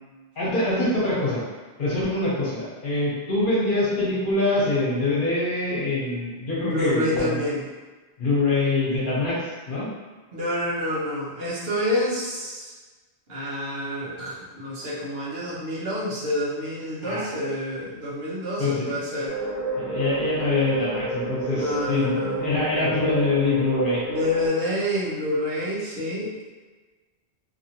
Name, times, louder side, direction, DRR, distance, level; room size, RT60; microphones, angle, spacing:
voice 1, 0.4-1.4 1.8-7.4 8.2-9.9 17.0-17.3 18.6-19.0 19.7-24.0, left 2 dB, 55° left, -7 dB, 1.1 m, -24 dB
voice 2, 6.6-7.7 10.3-12.7 13.3-19.4 21.5-22.4 24.1-26.5, left 1 dB, 70° right, -7 dB, 1.1 m, -28 dB
sound 1, 19.3-24.5, right 2 dB, 20° right, 0.7 m, -30 dB
2.8 x 2.7 x 2.8 m, 1.3 s
omnidirectional pair, 1.1 m